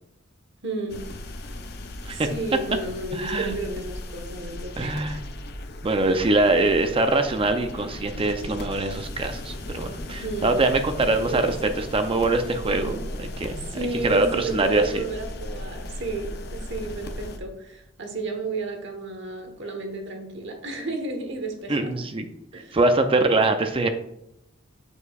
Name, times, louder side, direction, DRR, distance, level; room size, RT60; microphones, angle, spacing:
voice 1, 0.6-1.1 2.1-5.2 6.1-6.4 10.2-10.6 11.1-11.7 12.6-13.0 13.7-22.0 22.5-22.8 23.2-23.4, right 2 dB, 60° right, 4 dB, 1.2 m, -33 dB
sound 1, 0.9-17.4, left 1 dB, 55° left, 0.7 m, -37 dB
voice 2, 3.1-3.6 4.8-5.2 5.8-12.9 13.2-13.7 14.0-15.0 21.7-22.3 22.7-23.9, right 2 dB, 25° right, 7 dB, 0.5 m, -23 dB
7.0 x 6.8 x 2.4 m, 0.81 s
head